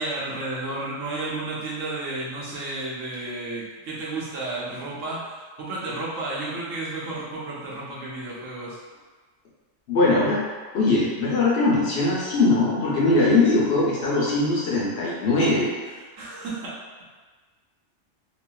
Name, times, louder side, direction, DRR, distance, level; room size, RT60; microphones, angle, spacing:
voice 1, 0.0-8.8 15.8-16.8, right 2 dB, 80° right, -6 dB, 1.1 m, -32 dB
voice 2, 9.9-10.4 10.7-15.7, left 2 dB, 60° left, -6 dB, 0.8 m, -21 dB
2.8 x 2.4 x 2.2 m, 1.4 s
omnidirectional pair, 1.3 m